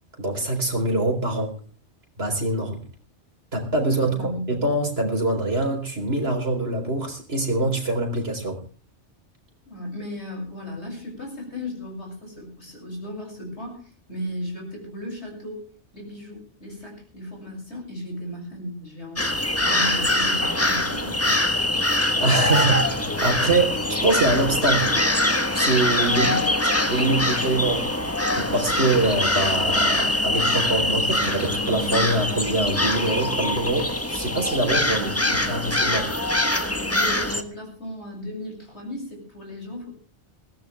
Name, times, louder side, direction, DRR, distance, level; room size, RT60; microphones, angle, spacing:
voice 1, 0.2-1.5 2.2-2.8 3.5-8.6 22.1-24.9 25.5-26.3 26.9-35.1 35.5-36.1, right 2 dB, 60° right, 2 dB, 4.5 m, -24 dB
voice 2, 3.8-4.4 9.7-15.6 15.9-21.4 22.6-22.7 26.1-26.4 35.0-35.3 36.9-39.9, equal, 70° left, 1 dB, 7.6 m, -35 dB
sound 1, 19.2-37.4, left 1 dB, 10° left, 1.4 m, -23 dB
21.0 x 17.0 x 3.5 m, 0.38 s
omnidirectional pair, 1.2 m